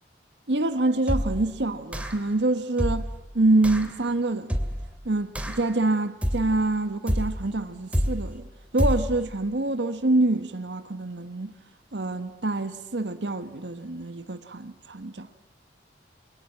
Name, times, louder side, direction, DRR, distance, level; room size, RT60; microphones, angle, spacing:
voice 1, 0.5-3.1 3.3-4.6 5.0-8.5 8.7-11.5 11.9-15.3, right 2 dB, 85° right, 1.3 m, -26 dB
sound 1, 1.1-1.5 1.9-2.3 2.8-3.2 3.6-3.9 4.5-4.9 5.3-5.7 6.2-6.6 7.1-7.5 7.9-8.3 8.8-9.2, equal, 5° right, 2.4 m, -27 dB
29.5 x 23.5 x 8.6 m
head